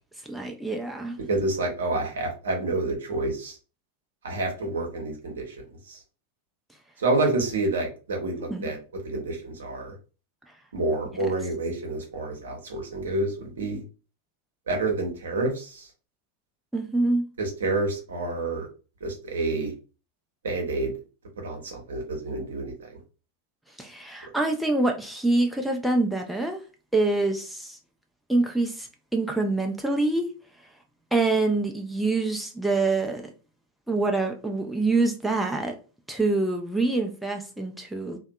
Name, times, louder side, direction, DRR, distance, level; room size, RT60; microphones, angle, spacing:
voice 1, 0.2-1.2 8.5-8.7 16.7-17.3 23.8-26.6 26.9-27.8 28.3-30.3 31.1-33.2 33.9-35.8 36.1-38.2, right 2 dB, ahead, 0.4 m, -25 dB
voice 2, 1.2-3.6 4.2-6.0 7.0-8.8 9.0-9.9 10.7-13.8 14.7-15.9 17.4-18.7 19.0-19.7 20.4-20.9 21.4-22.7, right 2 dB, 65° right, 0.7 m, -28 dB
2.6 x 2.2 x 2.2 m
figure-of-eight pair, 90°, 0 cm